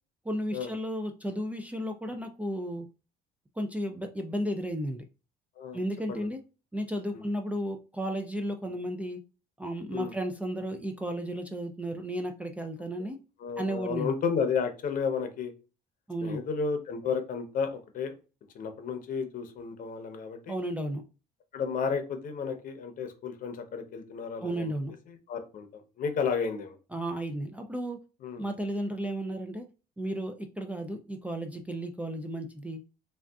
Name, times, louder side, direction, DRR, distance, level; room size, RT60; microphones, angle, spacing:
voice 1, 0.2-2.9 3.6-5.0 5.7-6.4 6.7-9.2 9.6-13.2 13.6-14.1 16.1-16.4 20.5-21.0 24.4-24.9 26.9-28.0 28.4-29.7 30.0-32.8, right 1 dB, 10° right, 3 dB, 0.3 m, -33 dB
voice 2, 13.4-15.5 16.2-18.1 18.5-20.6 21.5-24.7 25.1-26.8 28.2-28.5, left 6 dB, 55° left, 7 dB, 0.7 m, -32 dB
3.6 x 2.3 x 2.3 m, 0.32 s
cardioid pair, 110°, 17 cm